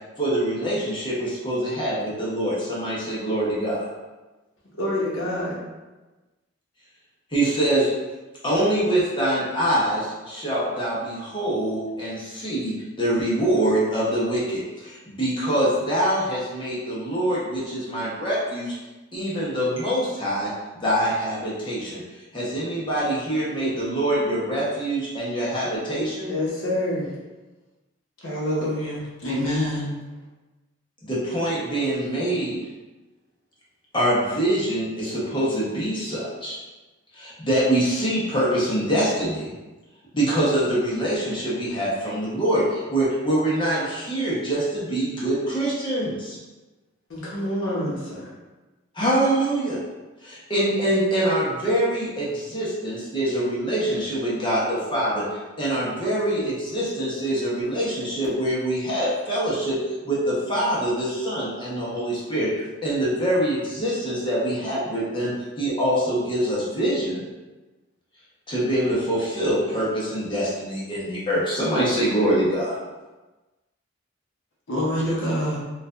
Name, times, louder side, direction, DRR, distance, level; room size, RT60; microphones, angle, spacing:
voice 1, 0.2-3.8 7.3-7.9 8.4-18.7 19.1-20.5 20.8-22.0 22.3-26.3 31.0-32.6 33.9-36.6 37.1-39.5 40.1-46.4 48.9-49.8 50.2-55.2 55.6-59.8 60.0-67.2 68.5-72.8, right 1 dB, 25° left, -7 dB, 1.0 m, -24 dB
voice 2, 4.8-5.6 26.3-27.1 47.1-48.3, left 1 dB, 90° left, -6 dB, 1.2 m, -27 dB
voice 3, 28.2-30.0 74.7-75.6, equal, 70° left, -5 dB, 0.9 m, -26 dB
4.5 x 2.5 x 2.5 m, 1.2 s
head